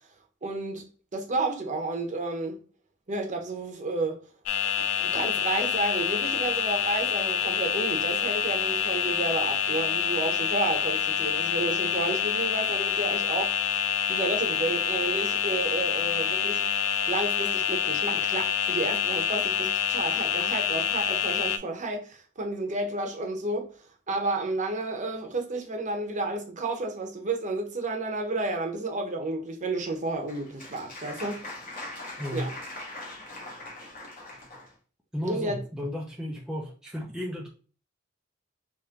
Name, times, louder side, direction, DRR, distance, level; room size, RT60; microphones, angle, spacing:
voice 1, 0.4-2.6 3.1-4.2 5.0-13.6 14.1-16.7 17.1-23.8 24.1-31.4 32.3-32.5 35.2-35.6, right 2 dB, 40° right, 0.8 m, -31 dB
sound 1, 4.4-21.6, left 8 dB, 75° left, 0.4 m, -27 dB
Applause, 29.9-34.7, left 2 dB, 45° left, 1.2 m, -41 dB
voice 2, 32.2-32.5 35.1-37.5, equal, 5° right, 0.5 m, -34 dB
3.6 x 3.0 x 2.9 m
head